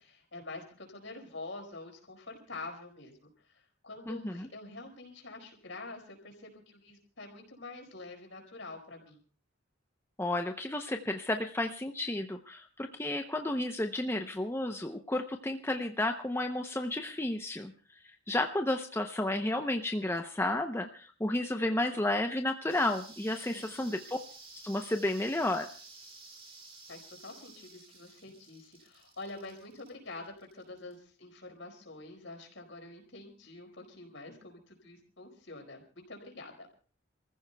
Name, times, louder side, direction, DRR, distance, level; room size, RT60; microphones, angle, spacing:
voice 1, 0.0-3.2 3.4-9.2 23.5-23.9 26.9-36.7, left 2 dB, 65° left, 2 dB, 4.6 m, -46 dB
voice 2, 4.1-4.5 10.2-17.7 18.3-24.2 24.6-25.7, left 1 dB, 10° left, 4 dB, 0.6 m, -32 dB
sound 1, 22.7-31.0, right 3 dB, 30° right, 2.3 m, -53 dB
29.5 x 15.0 x 2.2 m, 0.41 s
head